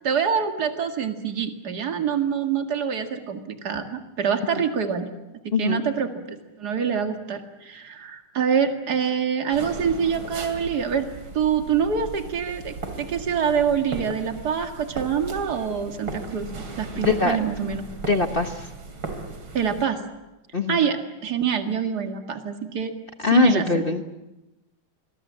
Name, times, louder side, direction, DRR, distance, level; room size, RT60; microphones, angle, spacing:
voice 1, 0.0-5.1 5.4-11.1 11.3-17.8 19.5-20.0 20.7-22.9 23.3-23.7, right 7 dB, 50° right, 6 dB, 2.4 m, -25 dB
voice 2, 5.5-5.8 17.0-17.4 18.1-18.7 20.5-20.8 23.2-24.0, left 4 dB, 35° left, 7 dB, 1.0 m, -22 dB
sound 1, 9.5-19.9, right 3 dB, 75° right, 3.8 m, -37 dB
27.0 x 22.5 x 7.5 m, 1.0 s
omnidirectional pair, 2.2 m